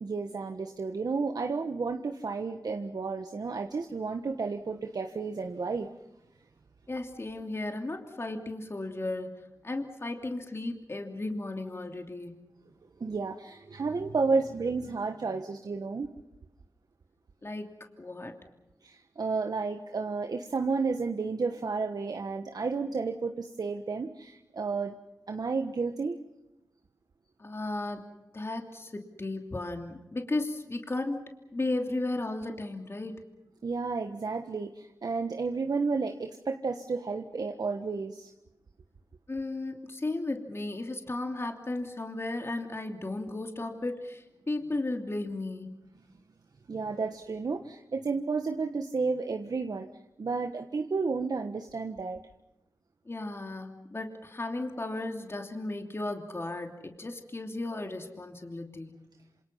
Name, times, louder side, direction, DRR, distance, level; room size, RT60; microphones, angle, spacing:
voice 1, 0.0-5.9 13.0-16.1 18.8-25.0 25.3-26.2 33.6-38.3 46.7-49.9 50.2-52.2, right 4 dB, 65° right, 5 dB, 1.4 m, -32 dB
voice 2, 6.9-12.4 17.4-17.7 18.0-18.4 27.4-28.1 28.3-31.2 31.5-33.2 39.3-45.8 53.0-59.0, left 2 dB, 35° left, 4 dB, 3.0 m, -35 dB
27.5 x 27.5 x 5.7 m, 0.93 s
wide cardioid pair, 60°, 7 cm